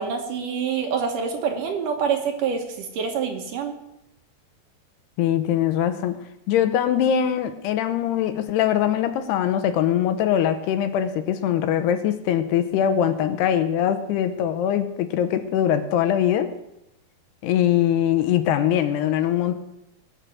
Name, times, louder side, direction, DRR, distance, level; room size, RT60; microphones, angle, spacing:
voice 1, 0.0-3.7, right 6 dB, 65° right, 3 dB, 2.3 m, -26 dB
voice 2, 5.2-6.2 6.5-16.5 17.4-19.6, left 10 dB, 85° left, 9 dB, 2.9 m, -22 dB
20.0 x 6.7 x 6.3 m, 0.88 s
omnidirectional pair, 4.7 m